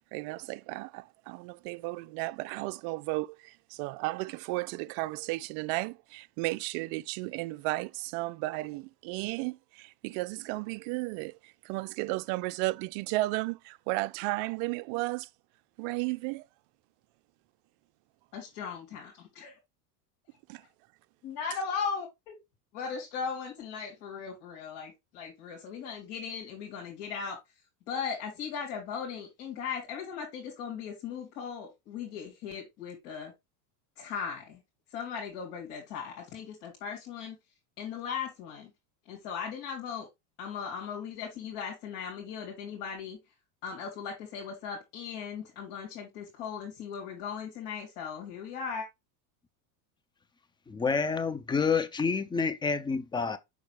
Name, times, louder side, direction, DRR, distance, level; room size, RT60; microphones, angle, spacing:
voice 1, 0.0-15.3 15.8-16.4 20.5-20.6, right 21 dB, 60° right, 0.5 m, -34 dB
voice 2, 18.3-19.6 20.6-20.7 21.2-22.4 22.7-27.4 27.9-33.3 34.0-34.6 34.9-37.4 37.8-38.7 39.0-40.1 40.4-43.2 43.6-48.9, left 6 dB, 60° left, 3.2 m, -38 dB
voice 3, 50.7-53.4, left 5 dB, 10° left, 0.4 m, -28 dB
6.1 x 4.7 x 3.3 m
supercardioid pair, 110°, 46 cm